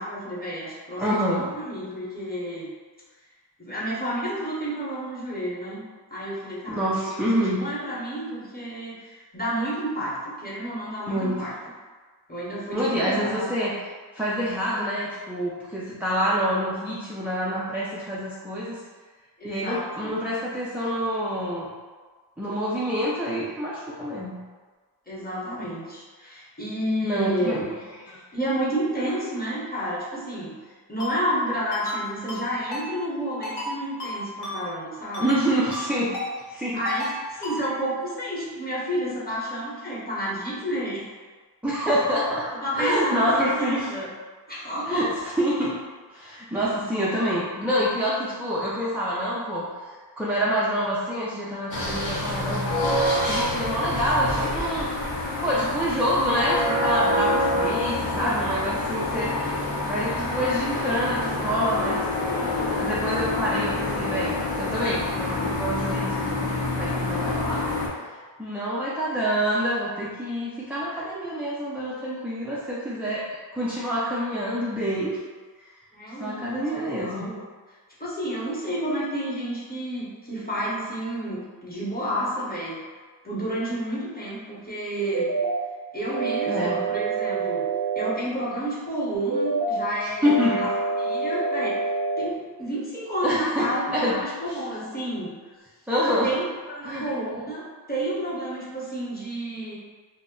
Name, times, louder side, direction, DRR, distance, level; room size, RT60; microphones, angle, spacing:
voice 1, 0.0-2.7 3.6-5.8 6.1-11.5 12.3-13.7 19.4-20.1 25.1-27.6 28.3-30.6 30.9-35.4 36.7-41.0 41.7-41.9 42.5-44.1 44.5-45.1 60.1-60.3 75.9-77.4 78.0-82.8 83.2-85.3 85.9-87.6 87.9-91.8 92.2-95.5 96.2-99.7, equal, 20° left, -8 dB, 0.9 m, -30 dB
voice 2, 1.0-1.5 6.7-7.7 11.1-11.4 12.7-13.8 14.1-18.8 19.4-21.7 22.4-24.4 27.0-27.7 28.0-28.2 35.2-36.2 36.5-36.8 41.6-42.5 42.7-43.9 44.9-45.1 45.4-45.8 46.1-49.7 50.2-54.9 55.4-59.4 59.8-62.0 62.7-67.6 68.4-73.2 73.5-75.2 76.2-77.3 86.5-86.8 90.2-90.6 93.2-94.2 95.9-96.3 96.8-97.1, equal, 5° right, -8 dB, 0.4 m, -26 dB
Ringtone, 31.0-31.1 31.7-32.0 32.3-32.4 32.7-32.8 33.4-33.7 34.0-34.1 34.4-34.6 35.1-35.4 35.7-35.8 36.1-36.3 36.8-37.1 37.4-37.6, left 2 dB, 70° left, 0.9 m, -32 dB
sound 1, 51.7-67.9, left 1 dB, 90° left, 0.7 m, -27 dB
sound 2, 85.0-85.6 86.1-88.1 89.1-89.8 90.2-92.2, right 4 dB, 40° right, 0.7 m, -26 dB
2.1 x 2.0 x 3.6 m, 1.4 s
wide cardioid pair, 50°, 43 cm